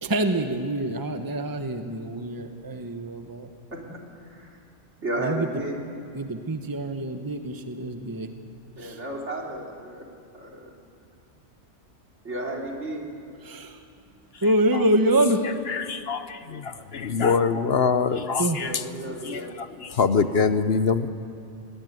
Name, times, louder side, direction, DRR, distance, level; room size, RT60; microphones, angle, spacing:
voice 1, 0.0-3.5 5.2-5.5 6.1-8.3 8.8-9.0 13.4-13.8 14.4-15.4 18.4-18.7, right 1 dB, 20° right, 6 dB, 1.1 m, -26 dB
voice 2, 3.7-4.6 5.0-5.8 8.8-10.0 10.3-10.7 12.2-13.0 18.6-19.5, right 1 dB, 65° right, -1 dB, 3.8 m, -33 dB
voice 3, 15.7-16.4 16.9-18.8 19.2-21.1, left 5 dB, 55° left, 11 dB, 1.0 m, -24 dB
23.0 x 19.0 x 9.3 m, 2.6 s
omnidirectional pair, 1.3 m